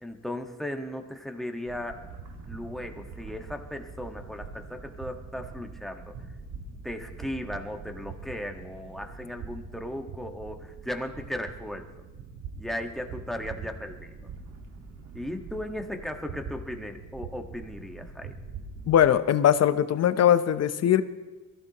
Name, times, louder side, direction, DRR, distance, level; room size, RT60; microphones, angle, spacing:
voice 1, 0.0-2.0 2.5-6.1 6.8-11.9 12.6-14.2 15.1-18.3, left 1 dB, ahead, 3 dB, 1.5 m, -36 dB
sound 1, 1.7-19.1, right 4 dB, 85° right, 1.8 m, -43 dB
voice 2, 18.9-21.0, left 10 dB, 55° left, 12 dB, 0.8 m, -21 dB
22.5 x 15.0 x 3.0 m, 1.2 s
cardioid pair, 90°, 30 cm